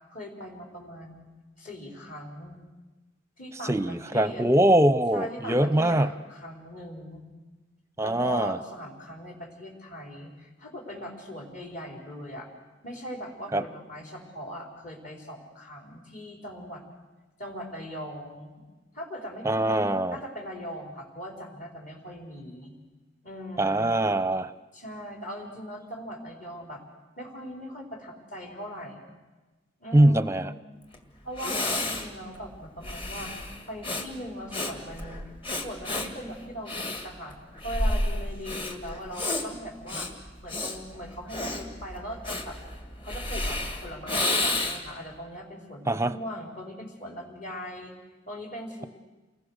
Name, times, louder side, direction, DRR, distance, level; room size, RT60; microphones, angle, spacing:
voice 1, 0.1-1.3 1.6-2.6 3.4-4.5 5.1-7.3 8.0-12.5 12.8-16.8 17.4-18.6 18.9-22.7 23.2-23.9 24.7-26.8 27.2-29.1 29.8-30.6 31.2-35.2 35.6-40.1 40.4-42.6 43.0-47.9 48.3-48.9, equal, 45° left, 0 dB, 5.1 m, -40 dB
voice 2, 3.6-6.1 8.0-8.6 13.5-13.6 19.4-20.2 23.6-24.5 29.9-30.5 45.9-46.2, right 1 dB, 15° right, 13 dB, 0.7 m, -22 dB
Breathing, 30.9-31.0 31.3-45.0, left 2 dB, 25° left, 2.2 m, -31 dB
29.0 x 21.5 x 6.7 m, 1.2 s
head